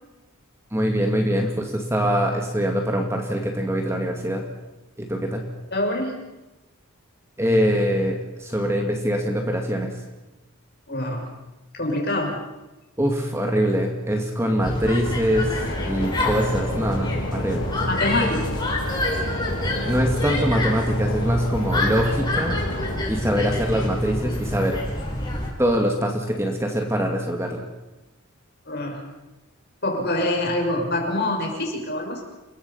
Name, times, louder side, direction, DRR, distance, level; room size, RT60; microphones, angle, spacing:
voice 1, 0.7-4.4 5.0-5.4 7.4-10.0 13.0-17.7 19.8-22.6 23.1-24.8 25.6-27.6, equal, 10° right, 2 dB, 2.2 m, -23 dB
voice 2, 5.7-6.3 10.9-11.3 11.7-12.4 17.9-18.4 28.6-29.1 29.8-32.2, left 1 dB, 45° left, 1 dB, 6.4 m, -25 dB
sound 1, 14.6-25.5, left 1 dB, 20° left, 5.7 m, -27 dB
sound 2, 15.4-23.0, left 1 dB, 85° left, 3.3 m, -32 dB
29.5 x 22.5 x 5.7 m, 1.1 s
head